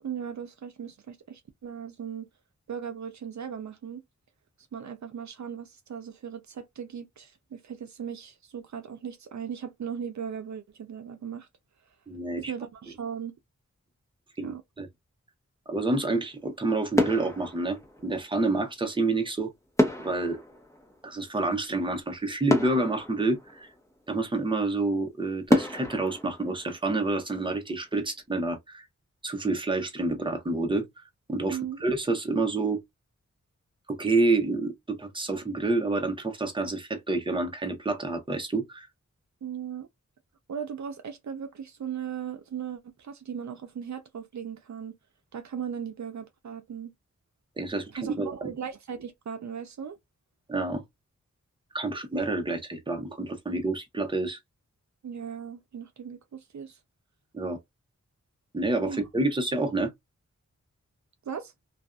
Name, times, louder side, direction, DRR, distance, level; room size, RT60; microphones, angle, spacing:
voice 1, 0.0-2.3 2.7-4.0 4.7-11.5 12.4-13.3 14.4-14.6 31.5-31.8 39.4-39.9 40.5-45.0 45.3-46.9 47.9-50.0 55.0-56.8 58.8-59.0 61.3-61.5, right 8 dB, 70° right, 0.5 m, -37 dB
voice 2, 12.1-12.5 14.4-14.9 15.7-19.5 20.0-20.4 21.0-23.7 24.1-28.8 29.2-30.9 31.3-32.8 33.9-38.9 47.6-48.5 50.5-50.8 51.7-54.4 57.3-57.6 58.5-59.9, right 2 dB, 15° right, 0.8 m, -28 dB
sound 1, 16.3-16.6 16.9-18.4 19.8-21.7 22.1-22.2 22.5-24.1 24.6-24.7 25.5-27.4 27.7-27.9, equal, 10° left, 1.0 m, -29 dB
2.5 x 2.3 x 2.2 m
wide cardioid pair, 75°, 30 cm